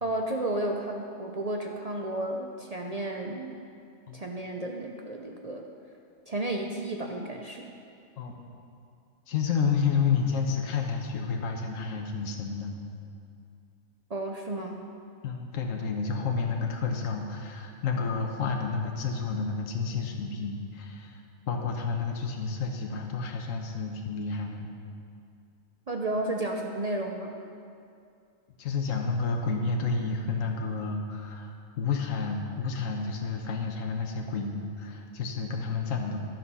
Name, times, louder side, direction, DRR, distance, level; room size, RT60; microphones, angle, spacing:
voice 1, 0.0-3.6 4.1-5.7 6.3-7.7 14.1-14.8 25.9-27.4, right 1 dB, 50° right, 1 dB, 0.4 m, -32 dB
voice 2, 9.3-12.7 15.2-21.2 21.5-24.7 28.6-36.2, left 5 dB, 75° left, 2 dB, 1.3 m, -30 dB
13.0 x 6.0 x 5.5 m, 2.5 s
omnidirectional pair, 1.4 m